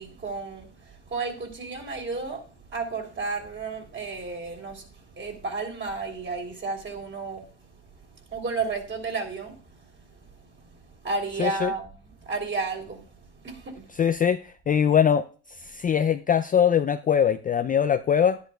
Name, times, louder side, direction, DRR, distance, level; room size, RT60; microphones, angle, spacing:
voice 1, 0.0-7.7 8.0-11.9 12.2-14.0, right 4 dB, 35° right, 3.4 m, -33 dB
voice 2, 11.4-11.7 14.0-15.2 15.6-18.4, left 8 dB, 25° left, 0.4 m, -22 dB
11.0 x 10.5 x 2.3 m
supercardioid pair, 80°, 34 cm